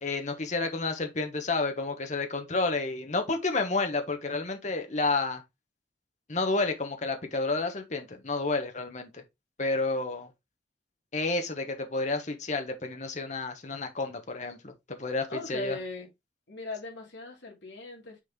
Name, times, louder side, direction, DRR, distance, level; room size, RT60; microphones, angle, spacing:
voice 1, 0.0-5.4 6.3-9.2 9.6-10.3 11.1-14.7 15.0-15.8, left 3 dB, 40° left, 1.2 m, -30 dB
voice 2, 15.3-16.1 16.5-18.2, left 2 dB, 70° left, 2.9 m, -38 dB
6.2 x 4.2 x 3.7 m
head